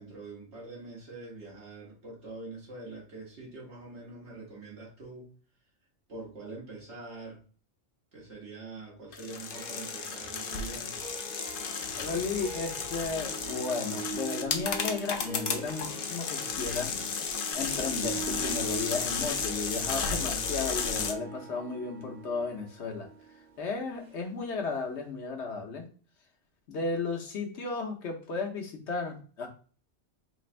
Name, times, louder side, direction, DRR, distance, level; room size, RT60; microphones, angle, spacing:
voice 1, 0.0-5.3 6.1-7.4 8.1-11.0 15.7-15.9, right 3 dB, 70° right, -4 dB, 1.6 m, -44 dB
sound 1, 9.1-21.1, left 5 dB, 60° left, 0.7 m, -33 dB
Harp, 9.3-24.7, right 5 dB, 50° right, 0.7 m, -43 dB
voice 2, 12.0-16.9 17.5-23.1 23.6-25.8 26.7-29.5, left 4 dB, 75° left, 2 dB, 1.2 m, -34 dB
3.9 x 3.3 x 2.5 m, 0.40 s
omnidirectional pair, 1.2 m